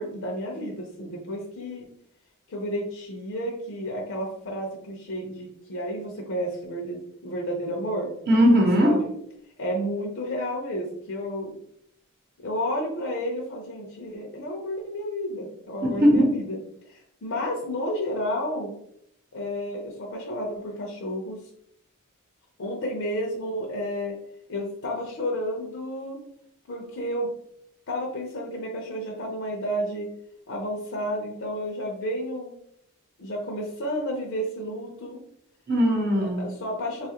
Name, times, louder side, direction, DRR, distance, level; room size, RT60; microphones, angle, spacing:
voice 1, 0.0-1.9 2.5-8.1 8.8-9.1 9.6-11.5 12.4-16.6 16.9-18.7 19.3-21.4 22.6-24.1 24.5-26.2 26.7-27.3 27.9-30.1 30.5-32.5 33.2-35.2 36.2-37.1, equal, 60° left, -1 dB, 0.6 m, -31 dB
voice 2, 8.3-9.0 15.8-16.3 35.7-36.5, equal, 45° right, 0 dB, 0.9 m, -19 dB
3.7 x 2.4 x 2.8 m, 0.72 s
head